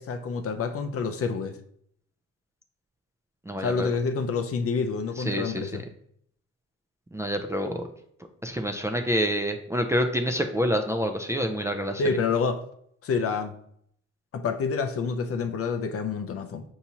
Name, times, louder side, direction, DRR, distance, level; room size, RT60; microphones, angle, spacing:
voice 1, 0.0-1.6 3.6-5.8 12.0-12.6 13.0-13.5 14.3-16.6, left 5 dB, 50° left, 7 dB, 0.5 m, -28 dB
voice 2, 3.5-3.9 5.2-5.8 7.1-7.9 8.4-12.0, equal, 10° right, 3 dB, 0.4 m, -27 dB
5.8 x 2.7 x 2.8 m, 0.68 s
cardioid pair, 90°, 30 cm